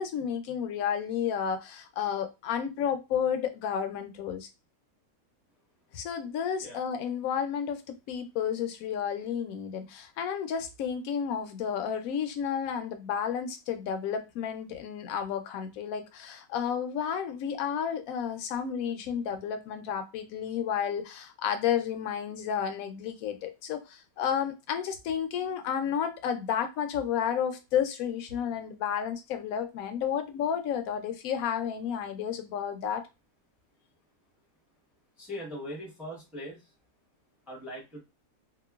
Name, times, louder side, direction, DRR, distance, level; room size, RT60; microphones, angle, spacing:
voice 1, 0.0-4.5 5.9-33.0, left 8 dB, 70° left, 7 dB, 0.9 m, -31 dB
voice 2, 35.2-36.7 37.5-38.0, equal, ahead, -2 dB, 0.5 m, -40 dB
2.9 x 2.1 x 2.3 m, 0.25 s
omnidirectional pair, 1.7 m